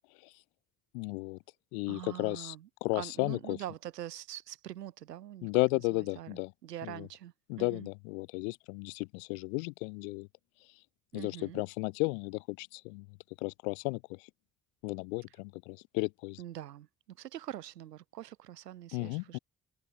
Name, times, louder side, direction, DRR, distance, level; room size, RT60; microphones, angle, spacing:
voice 1, 0.9-1.4 1.7-2.5 2.8-3.6 5.4-6.5 6.8-7.1 7.5-10.3 11.1-13.1 13.4-14.2 14.8-16.4 18.9-19.4, left 34 dB, 65° left, 0.5 m, -34 dB
voice 2, 1.9-7.9 11.1-11.6 16.4-19.4, right 12 dB, 85° right, 0.6 m, -44 dB
figure-of-eight pair, 40°, 47 cm